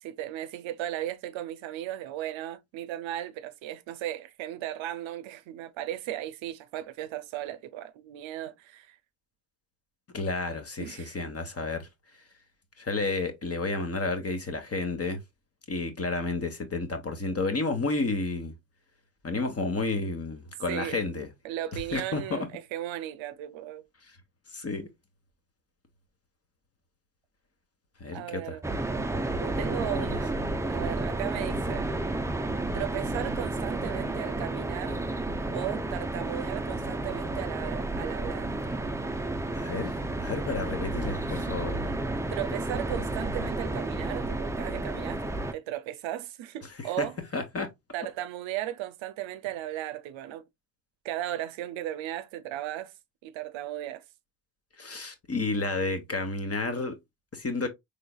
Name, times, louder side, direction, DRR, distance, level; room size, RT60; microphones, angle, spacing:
voice 1, 0.0-9.0 10.8-11.2 20.7-21.0 21.4-23.9 28.1-28.7 29.4-30.4 30.7-31.9 32.7-35.1 35.5-38.5 41.2-41.6 42.3-47.1 47.9-50.5 51.0-52.9 53.2-54.0, right 13 dB, 75° right, 0.6 m, -36 dB
voice 2, 10.1-11.9 12.8-15.2 15.7-18.5 19.2-21.3 21.9-22.5 24.5-24.9 28.0-28.6 30.1-30.2 39.5-41.8 47.0-47.1 47.3-47.7 54.8-57.0 57.3-57.7, left 3 dB, 30° left, 1.2 m, -31 dB
sound 1, 28.6-45.5, right 2 dB, 5° right, 0.4 m, -31 dB
3.8 x 3.4 x 2.3 m
supercardioid pair, 70°, 47 cm